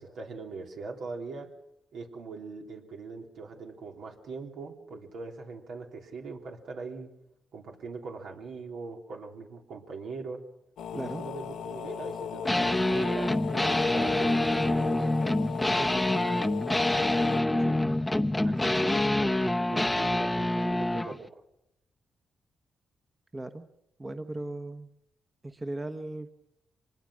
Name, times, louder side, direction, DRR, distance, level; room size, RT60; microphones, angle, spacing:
voice 1, 0.0-1.5 1.9-7.1 7.5-10.4 10.9-14.4 17.6-17.7 18.4-21.4, right 4 dB, 80° right, 1 dB, 3.3 m, -41 dB
sound 1, 10.8-17.4, left 8 dB, 85° left, 0.9 m, -37 dB
sound 2, 12.5-21.1, left 1 dB, 10° left, 0.8 m, -26 dB
voice 2, 15.6-16.2 23.3-23.6 24.0-24.9 25.4-26.3, right 2 dB, 20° right, 8 dB, 1.2 m, -37 dB
24.5 x 20.5 x 6.4 m, 0.82 s
cardioid pair, 85°, 0 cm